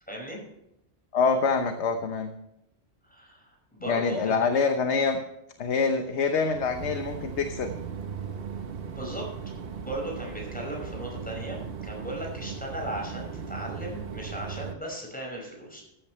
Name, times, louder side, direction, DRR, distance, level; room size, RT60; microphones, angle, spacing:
voice 1, 0.1-0.4 3.1-4.5 8.9-9.3 9.8-15.8, right 1 dB, 5° left, -1 dB, 5.4 m, -37 dB
voice 2, 1.1-2.3 3.9-5.2 5.6-7.7, left 5 dB, 70° left, 6 dB, 1.3 m, -25 dB
sound 1, 6.5-14.7, right 6 dB, 55° right, 1.2 m, -37 dB
14.5 x 13.0 x 3.2 m, 0.83 s
omnidirectional pair, 1.2 m